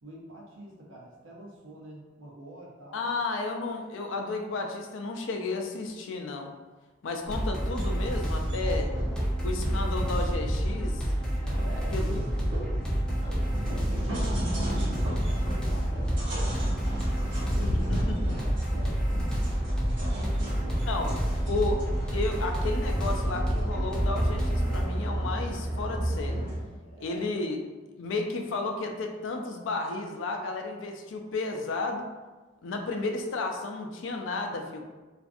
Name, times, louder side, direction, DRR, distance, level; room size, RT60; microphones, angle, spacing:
voice 1, 0.0-3.1 8.6-9.8 11.4-12.9 13.2-15.2 15.5-16.9 17.5-19.6 20.1-21.1 21.4-21.6 26.8-27.3, right 1 dB, 90° right, -3 dB, 0.7 m, -46 dB
voice 2, 2.9-6.5 7.0-8.9 9.4-11.1 11.9-12.1 17.6-18.2 20.9-21.1 21.5-21.8 22.1-26.4 27.0-27.6 28.0-32.1 32.6-34.8, left 3 dB, 75° left, 3 dB, 0.4 m, -32 dB
sound 1, 7.2-24.8, equal, 5° left, 0.4 m, -30 dB
sound 2, 7.4-26.6, right 1 dB, 65° right, 1.0 m, -32 dB
2.5 x 2.3 x 2.5 m, 1.3 s
head